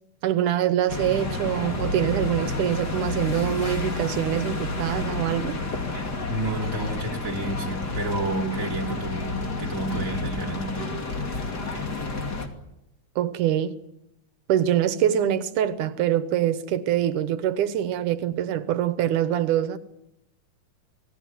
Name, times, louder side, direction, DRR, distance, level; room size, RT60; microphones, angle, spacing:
voice 1, 0.2-5.6 13.2-13.7 14.5-19.8, right 11 dB, 85° right, 2.6 m, -24 dB
sound 1, 0.9-12.5, left 3 dB, 35° left, 3.1 m, -30 dB
voice 2, 6.3-11.0, right 2 dB, 25° right, 3.4 m, -30 dB
27.5 x 19.0 x 9.4 m
omnidirectional pair, 3.5 m